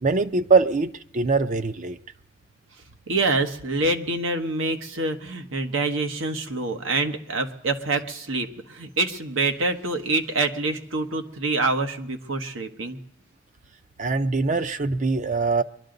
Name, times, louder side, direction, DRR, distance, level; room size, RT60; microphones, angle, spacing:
voice 1, 0.0-2.0 14.0-15.6, right 4 dB, 40° right, 0.5 m, -22 dB
voice 2, 3.1-13.0, right 3 dB, 90° right, 1.3 m, -26 dB
23.0 x 11.5 x 3.9 m
head